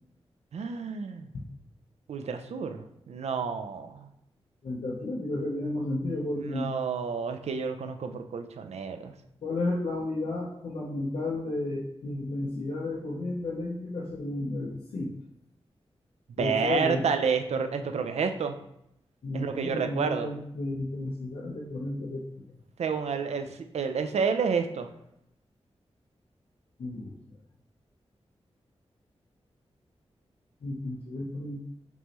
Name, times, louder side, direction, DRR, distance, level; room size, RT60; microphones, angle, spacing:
voice 1, 0.5-1.3 2.1-4.1 6.4-9.1 16.4-18.6 19.3-20.3 22.8-23.5 23.7-24.9, right 6 dB, 85° right, 7 dB, 0.4 m, -30 dB
voice 2, 4.6-6.7 9.4-15.1 16.4-17.0 19.2-22.4 26.8-27.1 30.6-31.6, left 2 dB, 70° left, -4 dB, 0.7 m, -32 dB
5.3 x 3.0 x 3.0 m, 0.78 s
wide cardioid pair, 150°, 11 cm